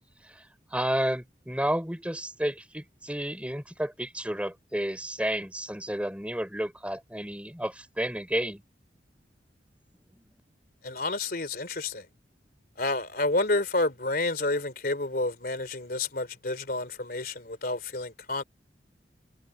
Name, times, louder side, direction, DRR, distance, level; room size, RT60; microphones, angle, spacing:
voice 1, 0.7-8.6, right 1 dB, 5° right, 3.5 m, -31 dB
voice 2, 10.8-12.1 12.8-18.4, left 2 dB, 55° left, 3.5 m, -29 dB
head